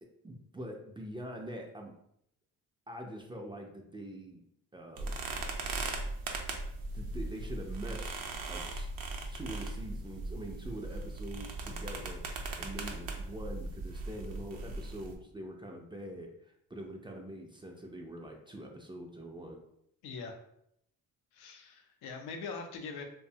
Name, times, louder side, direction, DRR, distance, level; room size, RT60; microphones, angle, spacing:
voice 1, 0.0-2.0 2.9-4.4 4.7-5.5 6.9-8.2 8.5-8.9 9.3-19.6, right 1 dB, 15° right, 2 dB, 0.3 m, -44 dB
sound 1, 5.0-15.2, right 2 dB, 60° right, 0.6 m, -39 dB
voice 2, 20.0-20.4 21.3-23.0, left 4 dB, 85° left, 4 dB, 0.6 m, -42 dB
2.6 x 2.2 x 2.6 m, 0.73 s
supercardioid pair, 70°, 38 cm